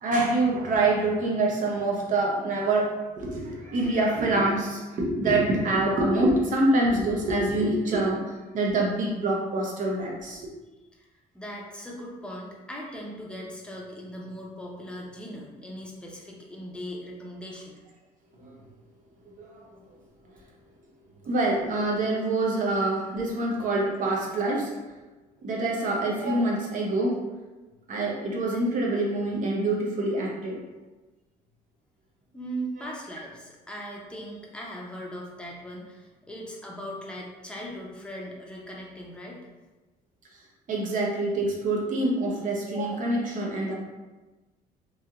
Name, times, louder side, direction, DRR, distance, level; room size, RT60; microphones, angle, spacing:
voice 1, 0.0-8.2 8.5-10.5 18.4-18.6 19.4-19.6 21.2-24.7 25.4-27.2 27.9-30.6 40.7-43.8, right 2 dB, 50° right, -2 dB, 0.8 m, -25 dB
voice 2, 11.3-17.8 32.3-39.4 43.4-43.5, equal, 5° left, -3 dB, 0.6 m, -39 dB
3.1 x 2.8 x 2.4 m, 1.2 s
cardioid pair, 110°, 17 cm